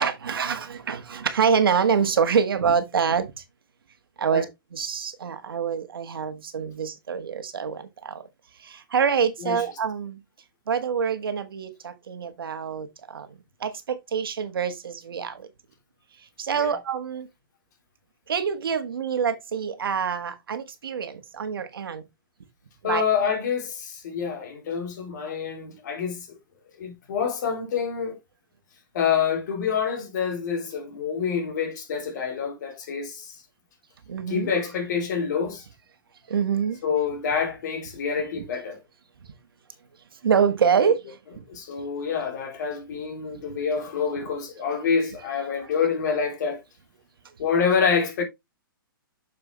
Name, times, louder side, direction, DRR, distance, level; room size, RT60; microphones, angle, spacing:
voice 1, 0.0-3.4 4.2-8.3 8.6-10.2 10.7-13.3 13.6-15.5 16.4-17.3 18.3-22.0 22.8-23.0 34.1-34.5 36.3-36.8 38.4-38.5 40.2-41.4 43.5-43.6, right 6 dB, 80° right, 1.6 m, -26 dB
voice 2, 22.8-26.4 26.8-28.2 28.9-33.3 34.3-35.6 36.8-38.8 41.5-46.6 47.4-48.2, left 6 dB, 50° left, 2.9 m, -27 dB
6.8 x 6.3 x 3.1 m
hypercardioid pair, 155°, 12 cm